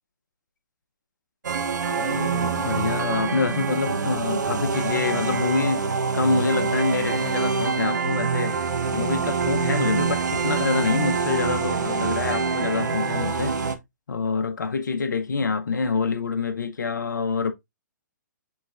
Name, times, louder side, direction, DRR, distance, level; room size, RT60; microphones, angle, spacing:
sound 1, 1.4-13.7, right 5 dB, 65° right, 0.7 m, -25 dB
voice 1, 1.9-8.6 8.9-13.6 14.1-17.5, left 4 dB, 70° left, 0.5 m, -26 dB
6.3 x 3.1 x 2.3 m
figure-of-eight pair, 130°, 10 cm